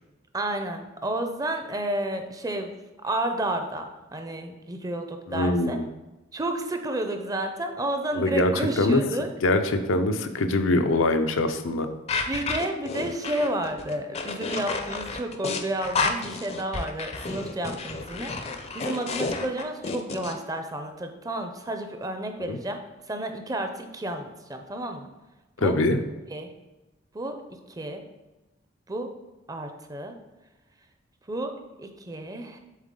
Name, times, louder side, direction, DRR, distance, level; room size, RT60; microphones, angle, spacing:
voice 1, 0.3-2.7 3.0-5.8 6.3-9.3 12.3-18.3 18.7-22.8 23.1-25.1 25.6-25.7 26.3-26.5 27.1-27.4 27.8-28.0 28.9-29.1 29.5-30.2 31.3-31.5 31.8-32.6, right 1 dB, 20° right, 5 dB, 0.5 m, -31 dB
voice 2, 5.3-5.9 8.1-9.0 9.4-11.9 22.4-22.6 25.6-26.0, left 2 dB, 85° left, 7 dB, 0.6 m, -23 dB
sound 1, 12.1-20.3, left 4 dB, 30° left, 0.5 m, -31 dB
7.4 x 3.7 x 3.7 m, 1.1 s
head